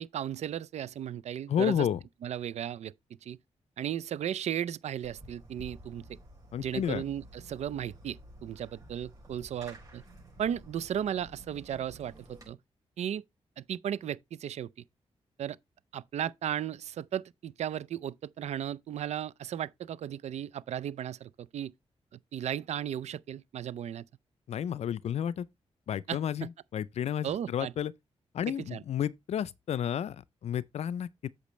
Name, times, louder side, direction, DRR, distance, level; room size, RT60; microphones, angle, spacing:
voice 1, 0.0-1.9 2.2-2.9 3.2-3.4 3.8-6.0 6.6-10.0 10.4-12.6 13.0-13.2 13.6-14.7 15.4-15.6 15.9-21.7 22.1-24.0 26.1-26.2 27.2-27.7 28.5-28.8, right 10 dB, 75° right, 0.5 m, -35 dB
voice 2, 1.5-2.0 6.5-7.0 24.5-25.5 25.9-27.9 28.3-31.3, left 9 dB, 70° left, 0.4 m, -31 dB
Fireworks, 5.0-12.5, right 1 dB, 35° right, 5.3 m, -51 dB
8.3 x 6.5 x 3.1 m
cardioid pair, 100°, 11 cm